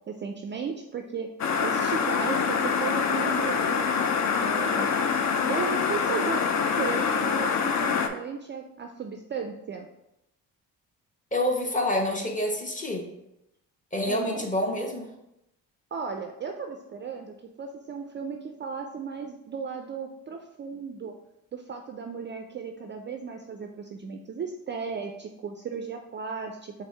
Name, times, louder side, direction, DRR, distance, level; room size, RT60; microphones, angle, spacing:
voice 1, 0.1-1.3 1.6-3.9 4.4-4.9 5.5-6.5 6.8-9.9 14.1-14.5 15.9-21.1 21.5-26.7, right 5 dB, 30° right, 4 dB, 0.4 m, -35 dB
sound 1, 1.4-8.1, left 6 dB, 45° left, 0.5 m, -25 dB
voice 2, 11.3-13.1 13.9-15.1, left 1 dB, 20° left, 1 dB, 0.9 m, -27 dB
4.1 x 2.1 x 4.6 m, 0.86 s
supercardioid pair, 70°, 38 cm